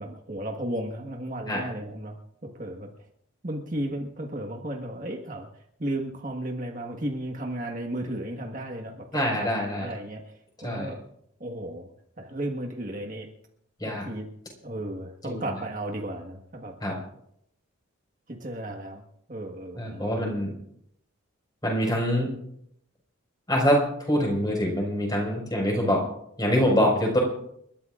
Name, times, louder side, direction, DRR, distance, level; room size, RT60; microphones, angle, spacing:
voice 1, 0.0-2.2 2.4-2.9 3.4-5.5 5.8-9.5 9.8-11.0 11.4-11.9 12.2-13.3 13.8-14.3 14.6-16.7 18.3-19.0 19.3-20.3, right 1 dB, 40° right, 1 dB, 1.5 m, -34 dB
voice 2, 9.1-9.9 10.6-10.9 13.8-14.0 15.2-15.4 16.8-16.9 19.7-20.5 21.6-22.3 23.5-26.0 26.4-27.2, equal, 20° left, 0 dB, 5.1 m, -25 dB
30.0 x 13.0 x 2.5 m, 0.72 s
head